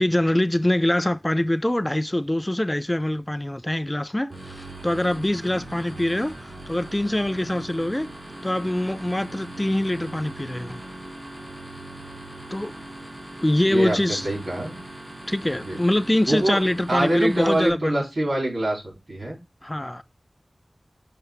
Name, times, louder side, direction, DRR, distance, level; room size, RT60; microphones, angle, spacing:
voice 1, 0.0-8.1 8.4-10.8 12.5-12.7 13.4-14.3 15.3-18.0 19.6-20.0, left 1 dB, 20° left, 0.3 m, -24 dB
sound 1, 4.3-17.7, right 1 dB, 50° right, 3.4 m, -40 dB
voice 2, 13.7-14.7 15.6-15.8 16.3-16.6 16.9-18.8 19.1-19.4, right 1 dB, 75° right, 3.4 m, -24 dB
6.6 x 2.9 x 4.9 m
wide cardioid pair, 65°, 0 cm